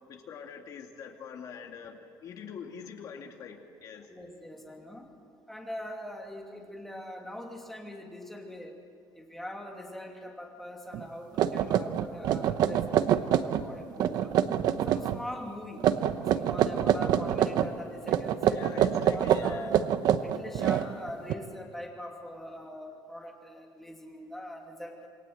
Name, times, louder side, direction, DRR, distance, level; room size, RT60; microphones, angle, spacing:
voice 1, 0.1-4.1 18.5-19.7, left 7 dB, 45° left, 3 dB, 2.5 m, -44 dB
voice 2, 4.1-5.1 5.5-8.8 9.1-14.4 14.8-15.8 16.3-19.8 20.2-25.1, left 1 dB, 5° left, 0 dB, 2.7 m, -42 dB
sound 1, 10.9-11.0 11.4-13.7 14.0-15.2 15.8-17.7 18.1-21.3, right 10 dB, 55° right, 1.0 m, -26 dB
27.5 x 22.5 x 8.0 m, 2.4 s
cardioid pair, 175°, 8 cm